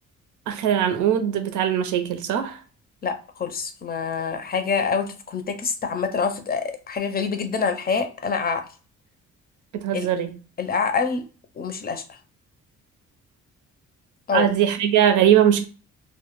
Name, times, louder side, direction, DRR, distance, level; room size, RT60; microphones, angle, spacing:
voice 1, 0.5-2.6 9.7-10.3 14.3-15.7, right 9 dB, 80° right, 0.6 m, -20 dB
voice 2, 3.0-8.6 9.9-10.1 10.6-11.2 11.6-12.0 14.3-14.5, left 5 dB, 30° left, 0.5 m, -26 dB
2.1 x 2.1 x 3.0 m
cardioid pair, 90°, 30 cm